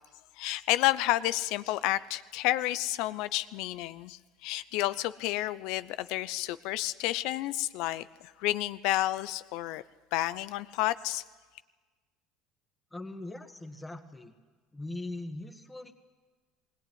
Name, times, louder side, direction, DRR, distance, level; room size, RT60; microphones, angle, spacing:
voice 1, 0.4-9.8 10.1-11.2, left 16 dB, 70° left, 15 dB, 0.7 m, -30 dB
voice 2, 12.9-14.3 14.7-15.9, left 2 dB, 10° left, 6 dB, 1.9 m, -40 dB
20.5 x 18.0 x 9.5 m, 1.4 s
supercardioid pair, 110°, 0 cm